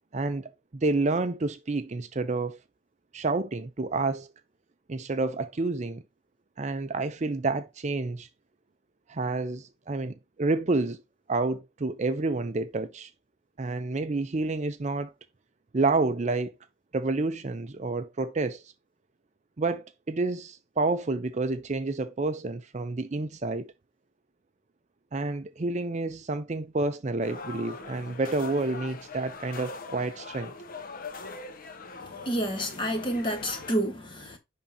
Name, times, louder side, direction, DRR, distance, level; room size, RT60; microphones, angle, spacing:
voice 1, 0.1-2.6 3.1-4.3 4.9-6.0 6.6-8.3 9.1-11.0 11.3-13.1 13.6-15.1 15.7-16.5 16.9-18.6 19.6-23.7 25.1-30.5, right 3 dB, 35° right, 0.5 m, -29 dB
sound 1, 27.2-33.8, left 4 dB, 45° left, 0.7 m, -42 dB
voice 2, 32.0-34.4, right 1 dB, 25° left, 1.4 m, -29 dB
10.5 x 3.7 x 2.8 m
head